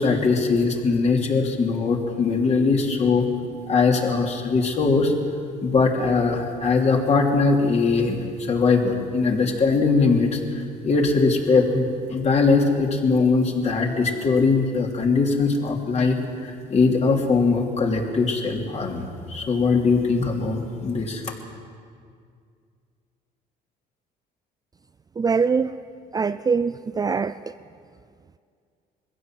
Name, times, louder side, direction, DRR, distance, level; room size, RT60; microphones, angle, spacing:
voice 1, 0.0-3.3 3.7-5.1 5.6-10.4 10.8-21.2, left 4 dB, 40° left, 1 dB, 3.0 m, -21 dB
voice 2, 25.2-25.7 26.1-27.5, right 5 dB, 20° right, 12 dB, 0.4 m, -23 dB
21.5 x 15.5 x 7.6 m, 2.2 s
cardioid pair, 110°, 17 cm